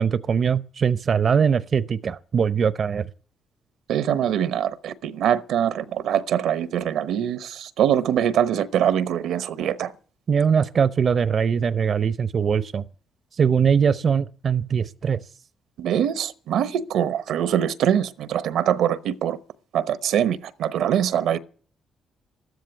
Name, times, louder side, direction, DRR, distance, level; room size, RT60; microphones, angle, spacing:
voice 1, 0.0-3.1 10.3-12.8 13.3-15.2, right 6 dB, 50° right, 0.7 m, -21 dB
voice 2, 3.9-9.9 15.8-19.4 19.7-21.4, right 10 dB, 80° right, 0.9 m, -23 dB
13.0 x 13.0 x 8.1 m
cardioid pair, 90°, 0 cm